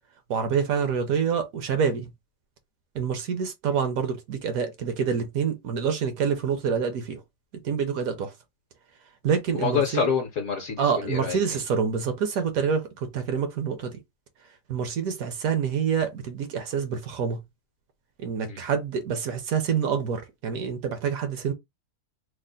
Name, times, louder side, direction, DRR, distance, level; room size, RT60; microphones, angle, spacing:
voice 1, 0.3-2.1 2.9-7.2 7.6-8.3 9.2-10.1 10.8-14.0 14.7-17.4 18.2-21.5, right 6 dB, 70° right, 0.9 m, -27 dB
voice 2, 9.5-11.4 18.5-18.6, left 6 dB, 60° left, 0.9 m, -26 dB
3.2 x 2.0 x 3.7 m
omnidirectional pair, 1.8 m